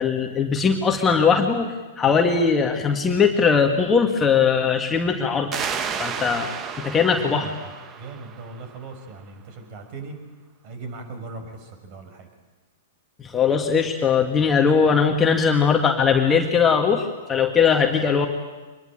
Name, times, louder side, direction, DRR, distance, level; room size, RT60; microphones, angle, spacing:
voice 1, 0.0-5.5 6.0-6.5 6.8-7.5 13.2-18.3, left 6 dB, 20° left, 2 dB, 2.1 m, -20 dB
sound 1, 5.5-8.9, right 6 dB, 25° right, 1.5 m, -32 dB
voice 2, 7.2-7.5 8.0-10.2 10.6-12.3, right 3 dB, 40° right, 6 dB, 6.2 m, -38 dB
25.0 x 21.5 x 9.1 m, 1.2 s
figure-of-eight pair, 110°, 0 cm